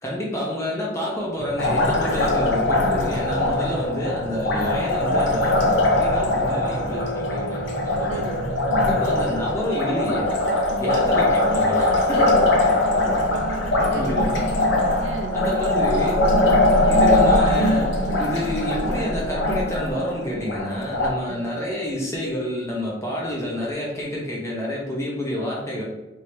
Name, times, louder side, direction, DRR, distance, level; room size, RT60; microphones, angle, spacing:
voice 1, 0.0-8.2 8.7-10.3 10.8-12.4 13.9-14.4 15.3-16.2 16.9-25.8, left 1 dB, 15° left, -4 dB, 0.9 m, -29 dB
sound 1, 1.4-9.6, right 1 dB, 10° right, 1.3 m, -32 dB
Liquid, 1.6-21.1, left 2 dB, 65° left, 0.7 m, -21 dB
sound 2, 6.9-11.2, right 1 dB, 85° left, 1.4 m, -40 dB
voice 2, 8.1-9.0 10.7-11.0 12.1-12.5 12.8-14.1 15.0-15.4 21.3-21.5, right 3 dB, 70° right, 5 dB, 0.4 m, -34 dB
3.3 x 2.7 x 3.1 m, 1.0 s
head